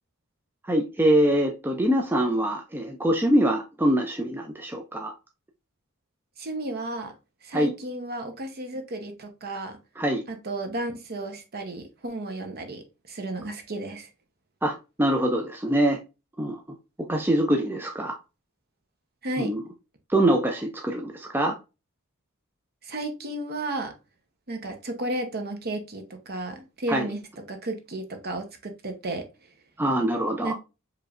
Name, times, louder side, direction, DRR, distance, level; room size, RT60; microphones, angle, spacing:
voice 1, 0.6-5.1 7.5-7.7 10.0-10.2 14.6-16.0 16.4-16.6 17.1-18.2 19.4-19.6 20.1-21.6 26.9-27.1 29.8-30.5, right 1 dB, 10° right, 0.4 m, -24 dB
voice 2, 6.4-7.1 7.4-9.8 10.3-14.1 19.2-19.5 22.8-23.9 24.5-27.2 27.5-29.2 30.4-30.5, right 2 dB, 45° right, 0.8 m, -33 dB
4.8 x 3.1 x 2.4 m
head